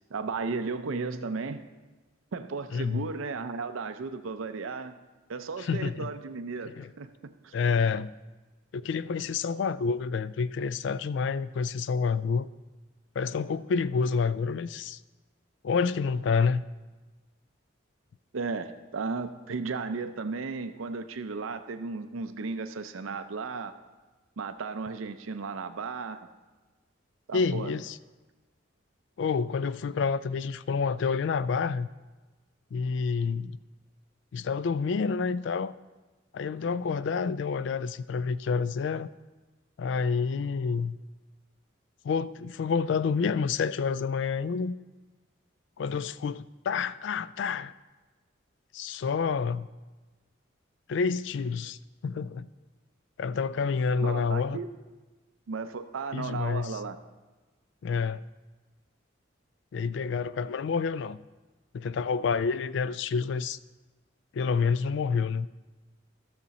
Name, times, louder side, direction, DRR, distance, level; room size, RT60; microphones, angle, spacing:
voice 1, 0.1-1.6 2.3-5.0 5.3-7.5 18.3-23.7 24.4-26.3 27.3-27.7 54.0-54.7 55.5-57.0, right 4 dB, 90° right, 0.5 m, -35 dB
voice 2, 2.7-3.1 5.6-6.1 6.8-6.9 7.5-8.1 8.7-12.5 13.2-15.0 15.6-16.6 27.3-28.0 29.2-31.9 32.7-33.6 34.3-35.7 36.3-39.1 39.8-41.0 42.0-44.8 45.8-47.7 48.7-49.7 50.9-52.5 53.2-54.6 56.1-56.8 57.8-58.2 59.7-61.2 61.7-63.6 64.3-65.5, left 5 dB, 65° left, 0.3 m, -28 dB
13.5 x 6.7 x 4.1 m
head